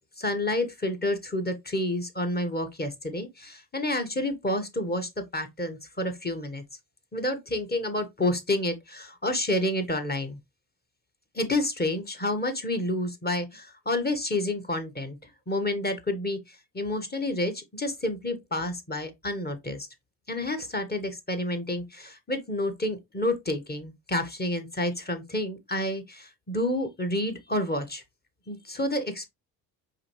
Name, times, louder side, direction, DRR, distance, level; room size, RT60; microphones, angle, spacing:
voice 1, 0.2-6.6 7.1-10.4 11.3-15.2 15.5-19.9 20.3-28.0 28.5-29.3, left 1 dB, 20° left, 1.3 m, -29 dB
4.8 x 3.3 x 3.1 m
hypercardioid pair, 55°, 49 cm